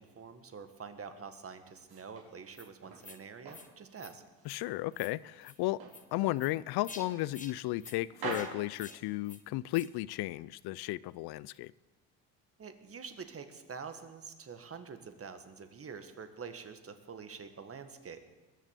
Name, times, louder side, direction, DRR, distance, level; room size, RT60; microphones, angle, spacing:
voice 1, 0.0-4.2 12.6-18.2, right 6 dB, 35° right, 9 dB, 1.8 m, -46 dB
sound 1, 1.6-3.1 3.5-4.9 5.2-6.0 6.4-6.6 7.0-7.8 8.1-9.6, right 4 dB, 60° right, 5.8 m, -44 dB
sound 2, 2.5-2.7 3.0-3.2 3.5-3.7 4.0-4.1 4.4-4.6 4.9-5.1 5.4-5.6 5.9-6.0 6.4-6.5 6.8-7.0 7.3-7.5 7.8-8.0 8.3-8.5 8.8-9.0 9.3-9.4 9.7-9.9, left 4 dB, 20° left, 1.4 m, -49 dB
voice 2, 4.4-5.8 6.1-11.7, left 17 dB, 70° left, 21 dB, 0.5 m, -34 dB
21.5 x 7.3 x 8.2 m, 1.2 s
cardioid pair, 95°, 40 cm